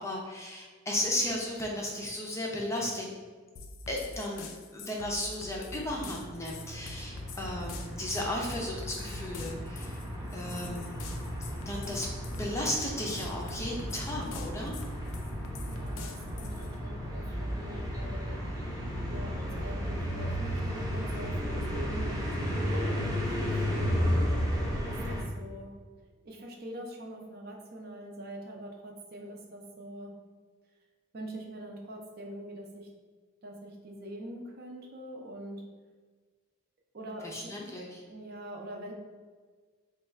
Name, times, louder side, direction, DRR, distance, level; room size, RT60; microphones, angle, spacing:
voice 1, 0.0-3.1 3.9-4.5 4.7-10.0 10.3-11.0 11.7-12.1 12.4-14.7 37.2-38.0, left 1 dB, 15° left, -2 dB, 0.5 m, -34 dB
sound 1, 3.6-16.7, left 3 dB, 85° left, 0.4 m, -45 dB
sound 2, 5.7-25.2, equal, 20° right, 0.8 m, -34 dB
voice 2, 15.7-18.4 18.9-24.5 24.8-25.7 26.2-30.1 31.1-32.9 33.4-35.6 36.9-37.5 38.1-38.9, right 1 dB, 50° right, 0 dB, 0.6 m, -44 dB
3.3 x 2.3 x 4.2 m, 1.5 s
head